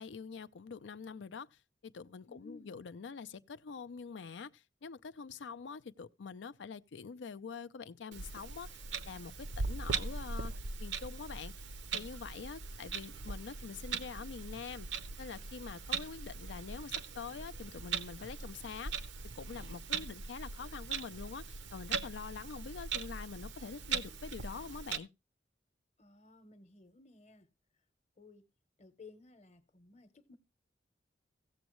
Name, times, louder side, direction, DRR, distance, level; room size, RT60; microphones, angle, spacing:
voice 1, 0.0-1.5 1.8-10.5 10.8-11.7 11.9-14.9 15.2-19.0 19.3-25.1, left 5 dB, 80° left, 0.5 m, -45 dB
voice 2, 2.3-2.7 26.0-27.5 28.2-28.4 28.8-30.4, left 3 dB, 40° left, 0.9 m, -56 dB
Clock, 8.1-25.0, right 5 dB, 75° right, 0.7 m, -40 dB
16.0 x 7.1 x 3.0 m
head